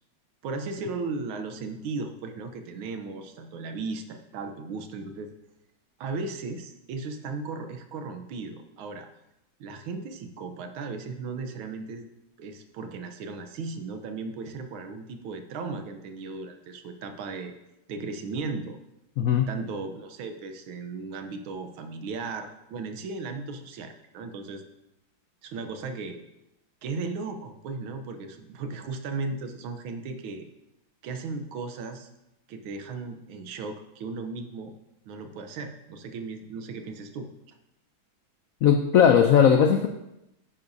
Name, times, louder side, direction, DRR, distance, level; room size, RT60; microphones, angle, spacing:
voice 1, 0.4-5.3 6.0-9.1 9.6-12.0 12.4-17.5 17.9-18.8 19.5-24.6 25.4-26.2 26.8-30.5 31.0-32.1 32.5-34.7 35.1-37.5, right 4 dB, 90° right, 7 dB, 1.7 m, -36 dB
voice 2, 19.2-19.5 38.6-39.9, left 8 dB, 85° left, 5 dB, 0.7 m, -18 dB
9.9 x 9.8 x 2.7 m, 0.88 s
omnidirectional pair, 2.2 m